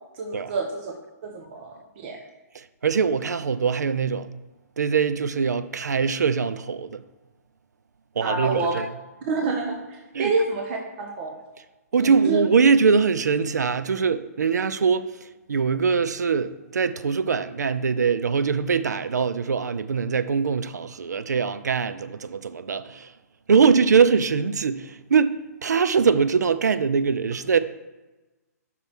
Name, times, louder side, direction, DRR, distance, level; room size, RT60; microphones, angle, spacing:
voice 1, 0.1-0.9 1.2-2.2 8.2-8.8 9.3-11.3 11.9-12.4, right 3 dB, 40° right, 0.9 m, -28 dB
voice 2, 2.5-4.3 4.8-7.0 8.2-8.9 10.1-10.3 11.9-15.1 15.5-23.1 23.5-27.6, right 5 dB, 85° right, 0.5 m, -22 dB
5.8 x 4.6 x 5.9 m
hypercardioid pair, 135°, 9 cm